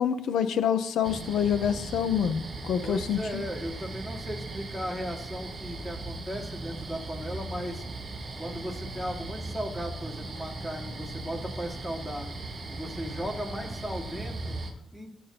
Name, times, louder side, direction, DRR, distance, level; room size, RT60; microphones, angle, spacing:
voice 1, 0.0-3.4, left 8 dB, 80° left, 10 dB, 0.8 m, -27 dB
sound 1, 1.0-14.7, right 2 dB, 35° right, 2.6 m, -38 dB
voice 2, 2.8-7.8 8.4-12.3 12.7-14.6 14.9-15.1, equal, 5° left, 1 dB, 2.3 m, -36 dB
18.0 x 8.4 x 2.9 m, 0.83 s
cardioid pair, 145°, 0 cm